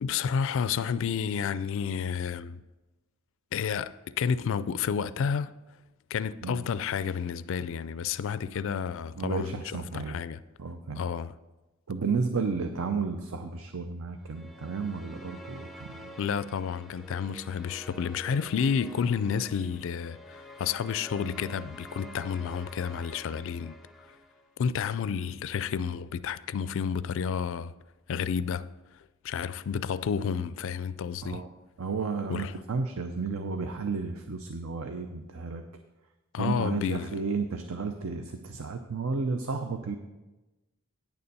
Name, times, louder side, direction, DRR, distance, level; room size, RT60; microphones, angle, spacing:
voice 1, 0.0-2.6 3.5-5.6 6.1-10.4 11.0-11.3 16.2-23.8 24.6-27.7 28.1-28.7 29.2-31.4 32.3-32.5 36.3-37.2, left 6 dB, 60° left, 0.3 m, -30 dB
voice 2, 9.2-10.2 10.6-11.0 11.9-16.2 31.2-31.5 31.8-35.6 36.4-40.0, right 4 dB, 70° right, 0.6 m, -32 dB
sound 1, 14.2-24.6, equal, ahead, 0.6 m, -48 dB
9.3 x 6.9 x 5.4 m
head